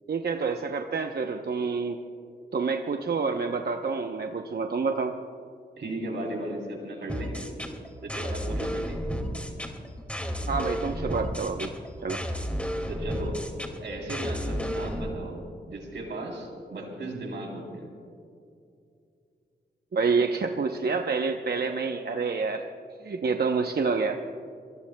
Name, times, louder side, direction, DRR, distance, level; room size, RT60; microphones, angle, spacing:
voice 1, 0.1-2.0 2.5-5.1 10.5-11.8 12.0-12.2 19.9-22.6 23.0-24.2, right 4 dB, 60° right, 4 dB, 0.8 m, -28 dB
voice 2, 5.8-7.5 8.0-9.0 12.9-13.4 13.8-17.9, right 1 dB, 85° right, 1 dB, 3.3 m, -36 dB
sound 1, 7.1-15.1, equal, 5° left, 2.2 m, -32 dB
27.5 x 19.5 x 2.2 m, 2.5 s
cardioid pair, 60°, 18 cm